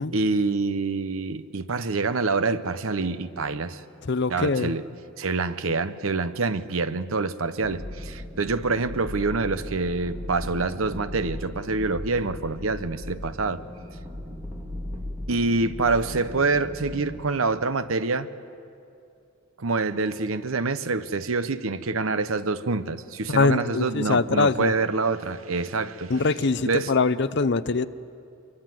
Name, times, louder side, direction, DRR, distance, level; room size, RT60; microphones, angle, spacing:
voice 1, 0.1-3.8 4.3-4.8 5.2-13.6 15.3-18.3 19.6-26.1 26.6-26.9, right 3 dB, 75° right, 0.9 m, -26 dB
voice 2, 4.0-4.7 23.3-24.7 26.1-27.9, left 4 dB, 55° left, 0.6 m, -23 dB
sound 1, 7.6-17.2, left 1 dB, 10° right, 2.9 m, -37 dB
25.0 x 23.0 x 7.7 m
head